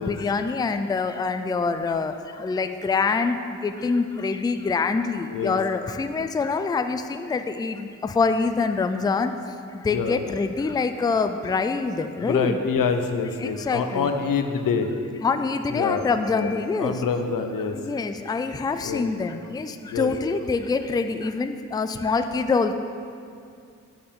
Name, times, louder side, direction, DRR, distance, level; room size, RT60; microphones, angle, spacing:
voice 1, 0.0-2.1 2.4-3.3 3.6-9.3 9.8-12.6 13.4-14.1 15.2-17.0 17.7-22.7, left 4 dB, 15° left, 8 dB, 0.3 m, -25 dB
voice 2, 12.2-14.9 15.7-16.1 16.3-16.5 16.8-17.8 18.8-19.1 19.9-20.1, left 5 dB, 90° left, 7 dB, 0.7 m, -26 dB
8.5 x 7.9 x 3.7 m, 2.4 s
wide cardioid pair, 95°, 32 cm